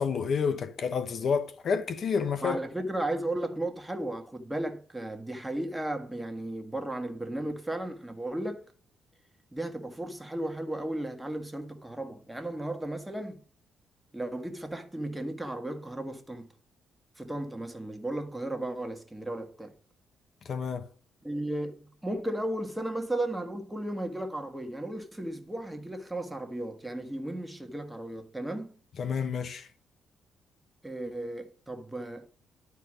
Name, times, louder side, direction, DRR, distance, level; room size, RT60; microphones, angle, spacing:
voice 1, 0.0-2.6 20.4-20.9 29.0-29.7, left 6 dB, 55° left, 0.9 m, -29 dB
voice 2, 2.4-8.6 9.5-13.4 14.1-16.5 17.2-19.7 21.2-28.8 30.8-32.3, right 1 dB, 5° right, 1.6 m, -35 dB
11.5 x 4.7 x 4.9 m
cardioid pair, 90°, 0 cm